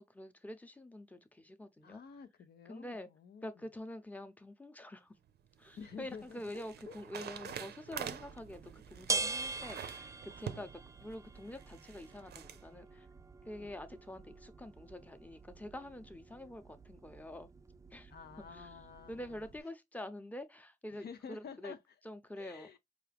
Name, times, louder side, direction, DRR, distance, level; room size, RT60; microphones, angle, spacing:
voice 1, 0.0-2.0 2.7-3.1 3.4-5.2 5.6-13.1 13.5-17.5 17.9-18.1 18.5-18.8 19.1-21.7 22.0-22.7, left 1 dB, 10° left, 0.7 m, -47 dB
voice 2, 1.8-3.7 5.8-7.6 8.0-8.2 10.5-10.7 13.6-13.7 18.1-19.5 20.9-21.8 22.4-22.8, left 6 dB, 70° left, 0.6 m, -51 dB
sound 1, 5.3-12.6, right 8 dB, 75° right, 0.5 m, -47 dB
sound 2, 8.1-19.6, right 3 dB, 20° right, 0.3 m, -44 dB
4.5 x 2.4 x 3.4 m
cardioid pair, 55°, 17 cm